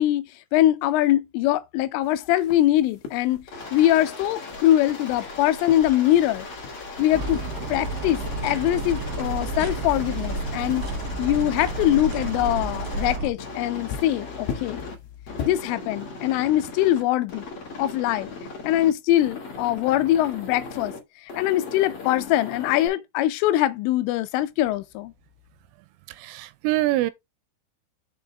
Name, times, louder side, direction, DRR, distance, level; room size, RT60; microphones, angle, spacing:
voice 1, 0.0-3.4 3.7-6.5 7.0-7.4 7.7-10.9 11.2-14.8 15.5-17.5 17.8-18.3 18.6-20.9 21.2-25.1, left 13 dB, 85° left, 3.1 m, -22 dB
sound 1, 2.0-15.6, left 6 dB, 65° left, 3.0 m, -41 dB
Aircraft, 3.5-14.9 15.3-17.0 17.3-18.9 19.2-21.0 21.3-22.9, left 4 dB, 40° left, 2.6 m, -38 dB
sound 2, 7.1-13.3, right 2 dB, 55° right, 3.1 m, -31 dB
voice 2, 26.1-27.1, right 17 dB, 80° right, 3.1 m, -24 dB
7.0 x 5.2 x 3.5 m
omnidirectional pair, 5.8 m